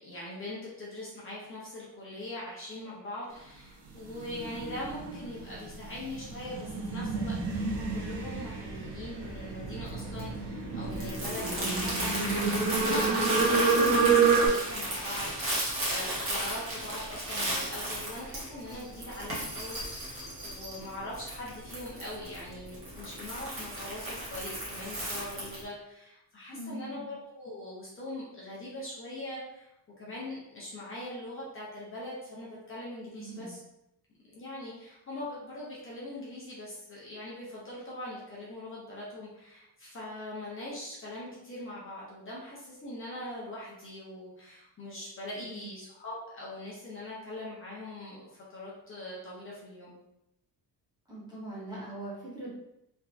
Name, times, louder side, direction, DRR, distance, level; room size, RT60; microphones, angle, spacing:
voice 1, 0.0-29.7 30.0-33.6 34.3-49.9, left 1 dB, 30° left, -6 dB, 0.9 m, -42 dB
sound 1, 4.0-14.5, right 4 dB, 75° right, 0.9 m, -29 dB
Crumpling crinkling, 9.2-25.6, right 1 dB, 30° right, 1.2 m, -35 dB
voice 2, 10.7-11.1 26.5-27.1 33.1-33.6 45.4-45.7 51.1-52.5, right 2 dB, 10° right, -8 dB, 1.0 m, -42 dB
3.5 x 2.9 x 2.5 m, 0.84 s
cardioid pair, 150°, 41 cm